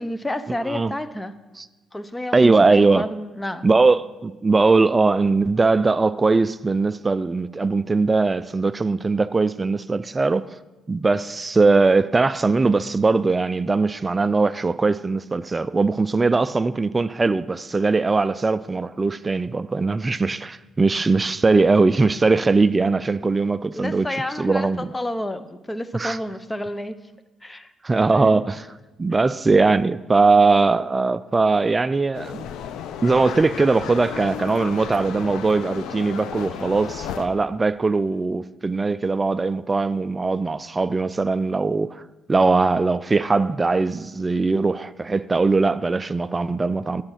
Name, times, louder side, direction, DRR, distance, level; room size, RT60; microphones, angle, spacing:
voice 1, 0.0-1.3 1.9-3.7 23.7-27.0 27.4-27.7 28.1-28.4, left 1 dB, 10° left, 0.7 m, -30 dB
voice 2, 2.3-3.0 3.6-10.5 10.9-24.1 24.4-24.9 25.9-26.2 27.8-28.6 29.0-32.4 33.0-42.0 42.3-47.0, right 3 dB, 25° right, 0.3 m, -20 dB
sound 1, 32.1-37.3, left 8 dB, 85° left, 0.7 m, -34 dB
11.5 x 7.7 x 5.7 m
cardioid pair, 90°, 0 cm